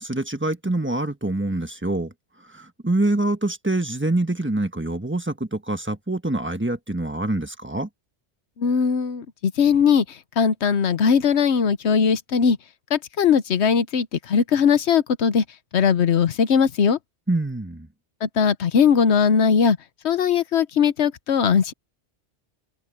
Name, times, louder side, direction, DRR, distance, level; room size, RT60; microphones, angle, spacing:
voice 1, 0.0-2.1 2.5-7.9 17.3-17.9, right 2 dB, 10° right, 1.4 m, -25 dB
voice 2, 8.6-10.0 10.4-12.6 12.9-15.4 15.7-17.0 18.2-19.8 20.0-21.7, left 6 dB, 75° left, 1.2 m, -19 dB
omnidirectional pair, 1.1 m